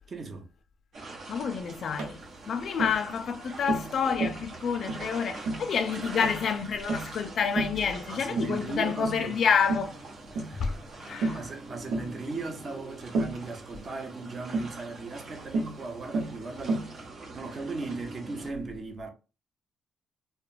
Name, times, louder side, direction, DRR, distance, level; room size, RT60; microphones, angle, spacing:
voice 1, 0.1-0.4 8.0-9.4 10.3-10.8 11.3-17.0 17.3-19.1, right 3 dB, 40° right, 0.7 m, -37 dB
sound 1, 0.9-18.5, right 2 dB, 65° right, 1.1 m, -44 dB
voice 2, 1.3-2.2 2.5-10.0 10.6-10.7 11.0-11.4, left 6 dB, 60° left, 0.4 m, -28 dB
Tap, 2.0-2.2 2.8-3.0 3.7-3.9 4.2-4.4 4.9-5.1 5.5-5.7 6.2-6.4 6.9-7.1 7.6-7.8 8.4-8.6 9.0-9.3 9.7-9.9 10.4-10.5 11.2-11.5 11.9-12.1 13.1-13.4 14.5-14.7 15.5-15.8 16.1-16.4 16.7-16.9, right 2 dB, 85° right, 0.7 m, -30 dB
2.9 x 2.1 x 2.4 m
cardioid pair, 90°, 0 cm